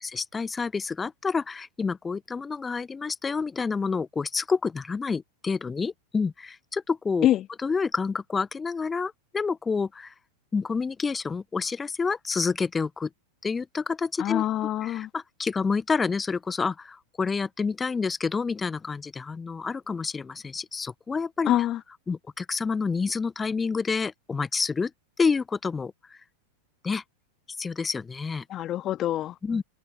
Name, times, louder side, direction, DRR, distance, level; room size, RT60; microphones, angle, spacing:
voice 1, 0.1-7.3 7.6-10.1 10.5-13.1 13.4-14.4 14.8-21.5 22.1-24.9 25.2-26.2 26.8-27.0 27.6-28.4 29.4-29.6, left 5 dB, 15° left, 1.3 m, -28 dB
voice 2, 14.2-15.1 21.5-21.8 28.5-29.4, left 13 dB, 30° left, 2.3 m, -25 dB
open air
figure-of-eight pair, 90°, 0 cm